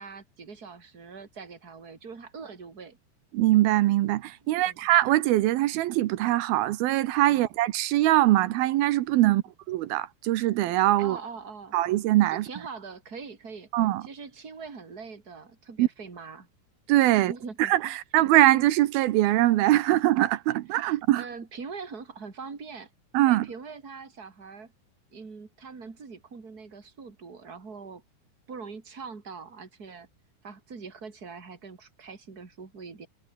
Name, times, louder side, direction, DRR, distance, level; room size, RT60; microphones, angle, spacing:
voice 1, 0.0-3.0 4.5-4.8 7.3-7.5 9.2-9.4 11.0-11.8 12.3-13.7 14.0-16.5 17.1-18.0 20.8-22.9 23.2-24.7 25.1-28.0 28.5-30.1 30.4-33.1, right 5 dB, 20° right, 3.3 m, -42 dB
voice 2, 3.3-9.4 9.7-11.2 11.7-12.4 13.7-14.0 15.8-15.9 16.9-17.3 17.6-21.2 23.1-23.5, right 15 dB, 75° right, 2.3 m, -22 dB
omnidirectional pair, 5.4 m